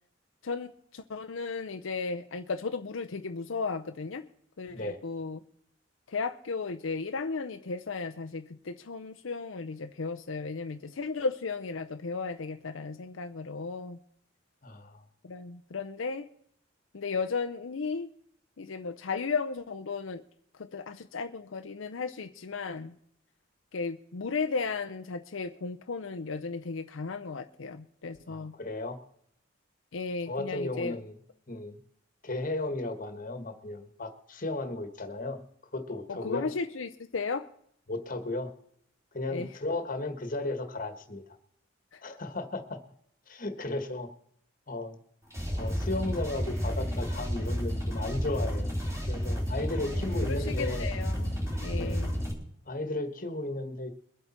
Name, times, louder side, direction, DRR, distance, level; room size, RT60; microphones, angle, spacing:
voice 1, 0.4-4.3 4.6-5.4 6.1-14.0 15.2-16.3 16.9-18.1 18.6-20.2 20.5-22.9 23.7-28.5 29.9-31.0 36.1-37.5 39.3-39.5 41.9-42.0 49.8-52.2, left 4 dB, 80° left, 7 dB, 0.7 m, -35 dB
voice 2, 4.7-5.0 14.6-15.0 28.3-29.0 30.3-31.1 31.5-31.8 32.2-35.4 35.7-36.5 37.9-38.5 39.1-41.4 42.0-42.8 43.3-44.1 44.7-45.0 45.5-48.8 49.1-50.9 51.7-52.0 52.7-53.9, left 2 dB, 45° left, 7 dB, 1.5 m, -35 dB
sound 1, 45.3-52.3, equal, 15° right, 3.8 m, -31 dB
22.5 x 8.2 x 4.4 m, 0.66 s
head